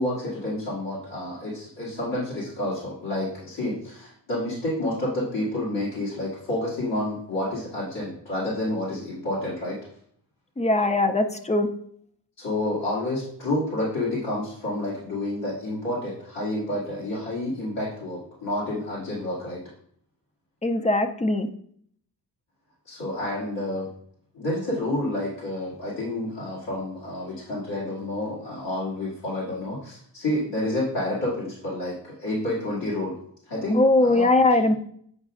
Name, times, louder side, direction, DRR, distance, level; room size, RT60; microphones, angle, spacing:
voice 1, 0.0-9.8 12.4-19.6 22.9-23.9 24.3-33.2 33.5-34.3, left 1 dB, 75° left, -9 dB, 2.3 m, -29 dB
voice 2, 10.6-11.7 20.6-21.5 33.7-34.8, left 2 dB, 15° left, 7 dB, 0.4 m, -20 dB
8.5 x 4.9 x 2.5 m, 0.63 s
wide cardioid pair, 140°, 42 cm